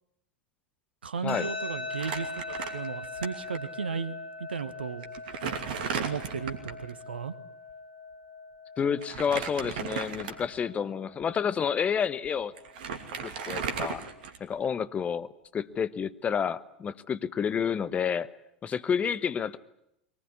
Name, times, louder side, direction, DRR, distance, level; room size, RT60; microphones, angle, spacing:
voice 1, 1.0-2.4 2.7-5.1 6.0-7.3, right 6 dB, 75° right, 14 dB, 1.4 m, -35 dB
sound 1, 1.3-14.3, left 3 dB, 70° left, 4.4 m, -42 dB
Crumpling crinkling, 1.9-3.3 3.5-3.7 4.5-4.6 5.0-6.8 9.0-10.6 11.2-11.4 12.2-12.3 12.6-14.7, right 6 dB, 60° right, 2.7 m, -35 dB
voice 2, 8.8-12.5 13.2-14.0 14.4-18.3 18.6-19.6, left 7 dB, 25° left, 14 dB, 1.1 m, -29 dB
23.0 x 19.5 x 9.8 m, 0.81 s
figure-of-eight pair, 85°, 6 cm